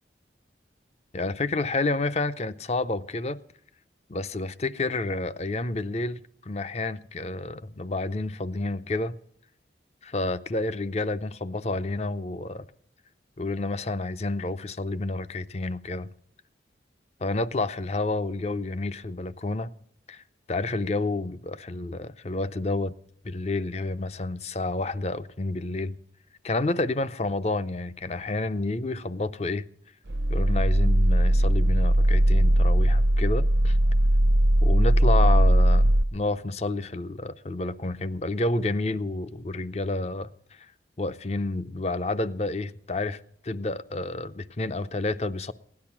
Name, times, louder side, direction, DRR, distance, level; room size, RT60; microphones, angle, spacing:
voice 1, 1.1-3.4 4.1-6.2 6.5-9.2 10.0-12.7 13.4-16.1 17.2-19.7 20.1-22.9 23.2-25.9 26.4-29.6 30.3-33.8 34.6-40.3 41.0-45.5, left 2 dB, 35° left, 0.5 m, -29 dB
sound 1, 30.1-36.0, right 1 dB, 65° right, 0.7 m, -19 dB
17.0 x 10.5 x 5.9 m
head